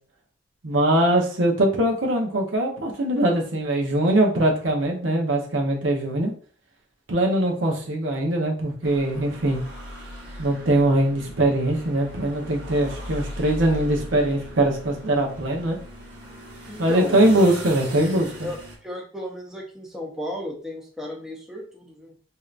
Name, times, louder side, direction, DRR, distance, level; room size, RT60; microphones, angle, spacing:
voice 1, 0.6-6.3 7.1-9.6 10.4-15.8 16.8-18.5, right 1 dB, 85° right, 0 dB, 0.8 m, -22 dB
sound 1, 8.8-18.8, equal, 60° right, 1.2 m, -39 dB
voice 2, 16.7-17.2 18.4-22.1, left 1 dB, 5° right, -2 dB, 0.6 m, -34 dB
3.2 x 2.7 x 2.4 m, 0.43 s
head